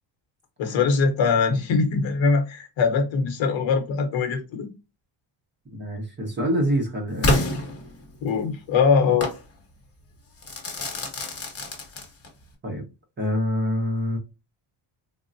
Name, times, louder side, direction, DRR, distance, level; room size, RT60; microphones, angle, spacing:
voice 1, 0.6-4.7 8.2-9.3, left 5 dB, 70° left, 0.8 m, -22 dB
voice 2, 5.7-7.4 12.6-12.9 13.2-14.2, equal, 25° right, 0.7 m, -26 dB
Crackle / Fireworks, 7.2-8.4 9.2-9.4 10.4-12.4, left 1 dB, 30° left, 0.8 m, -27 dB
3.6 x 2.0 x 2.6 m
cardioid pair, 145°, 48 cm